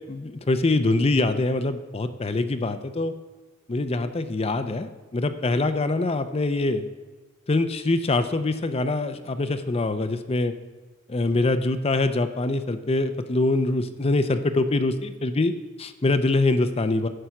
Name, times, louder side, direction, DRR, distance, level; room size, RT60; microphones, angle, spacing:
voice 1, 0.1-3.1 3.7-6.8 7.5-10.5 11.1-15.5 15.8-17.1, left 2 dB, 30° left, 10 dB, 0.5 m, -24 dB
11.0 x 7.6 x 5.8 m, 1.4 s
head